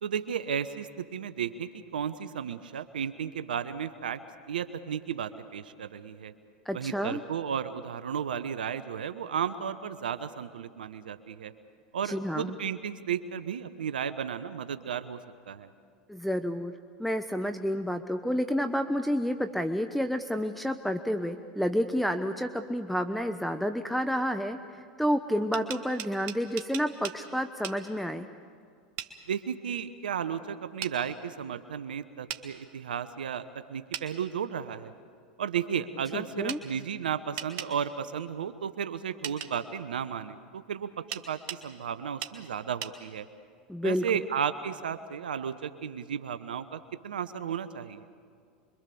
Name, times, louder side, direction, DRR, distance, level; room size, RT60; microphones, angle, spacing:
voice 1, 0.0-4.2 4.5-6.3 6.7-11.5 11.9-15.2 15.5-15.7 29.3-34.9 35.4-43.3 43.8-48.1, right 8 dB, 85° right, 12 dB, 1.0 m, -34 dB
voice 2, 6.7-7.2 12.0-12.5 16.1-16.7 17.0-24.6 25.0-28.3 36.1-36.6 43.7-44.0, equal, ahead, 8 dB, 0.9 m, -30 dB
sound 1, 25.3-27.2 27.6-27.8 29.0-29.1 30.8-31.0 32.3-32.4 33.9-34.1 36.5-36.6 37.4-37.7 39.2-39.5 41.1-41.6 42.2-42.4 42.8-43.0, right 11 dB, 55° right, 1.8 m, -37 dB
26.0 x 23.5 x 7.0 m, 2.2 s
hypercardioid pair, 95°, 5 cm